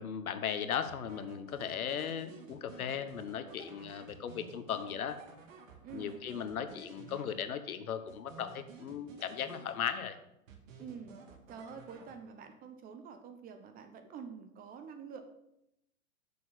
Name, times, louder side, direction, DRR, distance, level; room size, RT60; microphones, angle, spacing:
voice 1, 0.0-5.2 5.9-10.2, left 8 dB, 80° left, 10 dB, 1.1 m, -37 dB
sound 1, 0.9-7.7 8.1-10.1 10.5-12.5, right 4 dB, 65° right, 2.0 m, -53 dB
voice 2, 5.8-6.2 10.8-11.1 11.5-15.2, right 6 dB, 20° right, 8 dB, 0.8 m, -47 dB
6.9 x 6.4 x 6.8 m, 0.82 s
hypercardioid pair, 130°, 42 cm